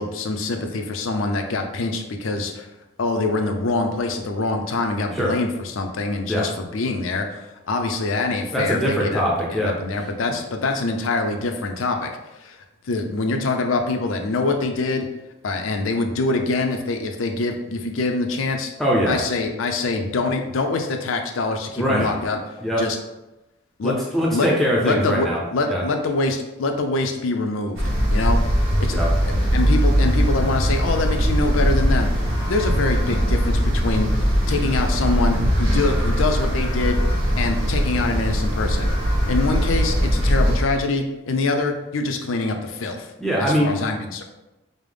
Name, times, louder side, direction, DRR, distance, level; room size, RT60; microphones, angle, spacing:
voice 1, 0.0-2.7 3.0-9.2 9.5-12.1 12.4-12.6 12.9-15.1 15.4-18.7 19.1-22.4 22.8-23.0 23.8-23.9 24.3-24.5 24.8-25.3 25.5-27.8 28.1-28.4 28.8-32.1 32.5-34.1 34.5-37.0 37.4-38.9 39.3-43.1 43.4-44.2, left 3 dB, 85° left, 5 dB, 0.5 m, -24 dB
voice 2, 8.5-9.8 18.8-19.2 21.8-22.1 22.6-22.8 23.8-25.4 25.7-25.8 28.9-29.1 43.2-43.7, equal, ahead, -4 dB, 0.5 m, -22 dB
sound 1, 27.8-40.6, equal, 90° right, 1.1 m, -20 dB
5.3 x 2.0 x 3.3 m, 1.0 s
head